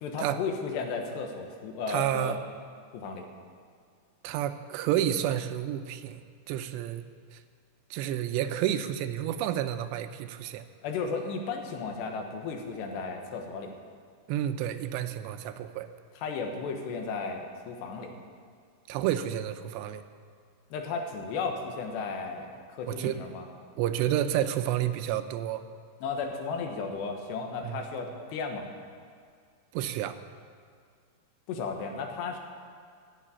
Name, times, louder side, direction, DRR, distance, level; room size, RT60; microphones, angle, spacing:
voice 1, 0.0-2.4 2.9-3.3 10.8-13.8 16.2-18.1 20.7-23.5 26.0-28.7 31.5-32.4, left 4 dB, 80° left, 3 dB, 3.5 m, -34 dB
voice 2, 1.9-2.4 4.2-7.0 7.3-7.4 7.9-10.7 14.3-15.9 18.9-20.0 22.9-23.2 23.8-25.6 27.6-27.9 29.7-30.2, right 11 dB, 90° right, 10 dB, 2.9 m, -30 dB
15.0 x 7.5 x 9.7 m, 2.1 s
omnidirectional pair, 4.8 m